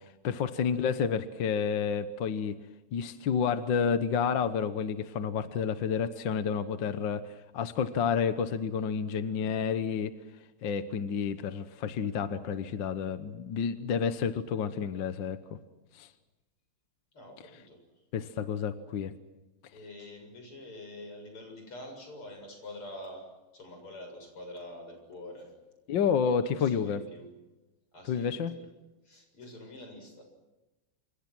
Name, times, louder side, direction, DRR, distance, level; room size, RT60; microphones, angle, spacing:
voice 1, 0.0-2.6 2.9-10.1 10.6-15.4 15.9-16.1 18.1-19.1 25.9-27.0 28.1-28.5, left 7 dB, 60° left, 10 dB, 1.7 m, -30 dB
voice 2, 17.1-17.8 19.7-25.5 26.3-27.3 27.9-28.7 29.0-30.2, left 1 dB, 75° left, 4 dB, 8.2 m, -46 dB
28.5 x 27.5 x 6.2 m, 1.1 s
omnidirectional pair, 2.4 m